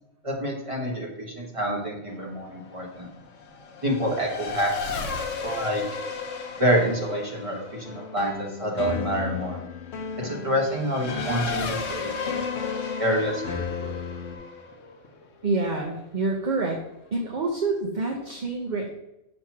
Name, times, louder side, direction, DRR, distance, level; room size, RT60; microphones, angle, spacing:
voice 1, 0.2-3.1 3.8-4.9 5.4-5.8 6.6-9.6 10.2-12.5 13.0-14.0, equal, 25° right, -2 dB, 1.4 m, -27 dB
Race car auto racing / Accelerating revving vroom, 2.1-16.2, left 5 dB, 90° left, 1.1 m, -35 dB
sound 1, 7.8-14.4, left 5 dB, 60° left, 1.0 m, -35 dB
voice 2, 15.4-16.8 17.1-18.9, right 3 dB, 45° right, 1 dB, 0.7 m, -27 dB
6.4 x 3.0 x 5.8 m, 0.90 s
omnidirectional pair, 1.2 m